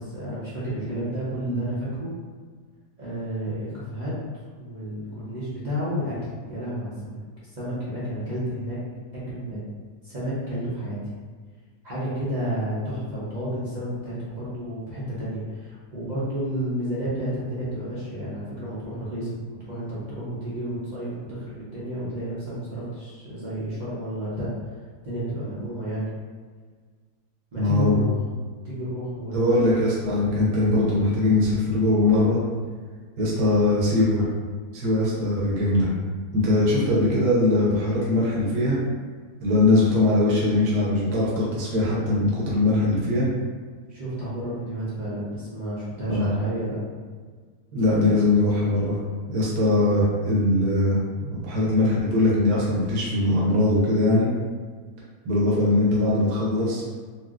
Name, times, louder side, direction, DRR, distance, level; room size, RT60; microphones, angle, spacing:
voice 1, 0.0-2.1 3.0-4.1 4.6-7.2 7.5-8.8 9.3-9.6 10.0-11.0 11.8-19.3 19.7-24.5 25.0-26.1 27.5-28.2 28.6-29.5 43.9-46.8, equal, 50° right, -10 dB, 0.5 m, -31 dB
voice 2, 27.6-28.0 29.3-32.4 33.2-34.3 34.7-35.9 36.3-38.8 39.4-43.3 46.1-46.3 47.7-49.0 49.3-54.3 55.2-56.8, left 2 dB, 75° right, -6 dB, 1.3 m, -21 dB
4.1 x 2.0 x 2.4 m, 1.5 s
omnidirectional pair, 1.7 m